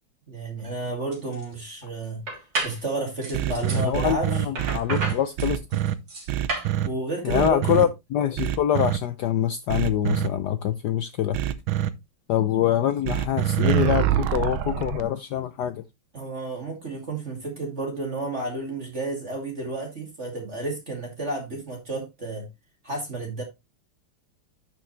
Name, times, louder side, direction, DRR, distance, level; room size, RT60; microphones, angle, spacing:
voice 1, 0.3-2.2 2.6-4.4 6.8-7.9 16.1-22.4 22.8-23.4, right 2 dB, 30° right, 2.6 m, -31 dB
sound 1, 0.6-0.7 1.1-1.7 2.3-2.8 3.2-3.8 4.6-6.7, right 2 dB, 55° right, 3.9 m, -32 dB
sound 2, 3.3-5.9 6.3-6.9 7.3-7.8 8.4-9.0 9.7-10.3 11.3-11.9 13.1-15.0, right 12 dB, 75° right, 1.5 m, -25 dB
voice 2, 3.7-5.6 7.2-11.4 12.3-15.8, left 10 dB, 75° left, 0.9 m, -25 dB
10.0 x 6.2 x 3.2 m
omnidirectional pair, 2.4 m